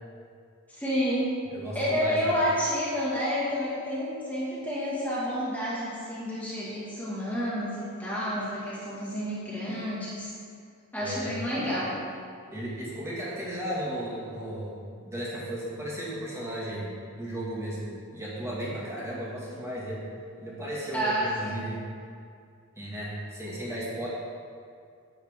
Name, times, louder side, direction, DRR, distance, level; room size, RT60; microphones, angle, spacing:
voice 1, 0.7-1.4 1.8-10.3 10.9-11.9 20.9-21.6, equal, 5° left, -9 dB, 1.8 m, -29 dB
voice 2, 1.5-2.3 11.0-11.4 12.5-14.7 15.0-20.0 20.4-21.8 22.8-24.1, equal, 15° right, -7 dB, 2.0 m, -35 dB
10.5 x 8.8 x 3.7 m, 2.3 s
head